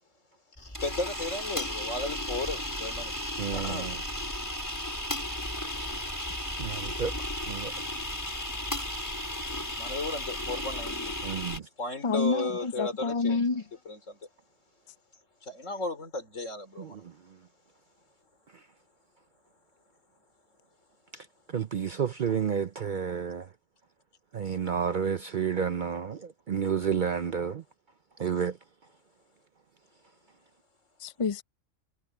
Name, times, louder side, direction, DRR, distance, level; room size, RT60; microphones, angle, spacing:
voice 1, 0.6-3.1 3.5-3.9 9.8-11.2 11.8-14.2 15.4-17.1 24.4-24.6, left 2 dB, 75° left, 4.4 m, -35 dB
sound 1, 0.6-11.6, left 1 dB, 15° left, 5.3 m, -34 dB
voice 2, 3.4-4.0 6.6-7.2 7.5-7.7 11.2-11.7 16.8-17.4 18.5-18.6 21.1-23.5 24.3-27.6 28.2-28.6, right 7 dB, 50° right, 0.6 m, -31 dB
voice 3, 12.0-13.6 31.0-31.4, left 4 dB, 35° left, 0.6 m, -28 dB
omnidirectional pair, 1.3 m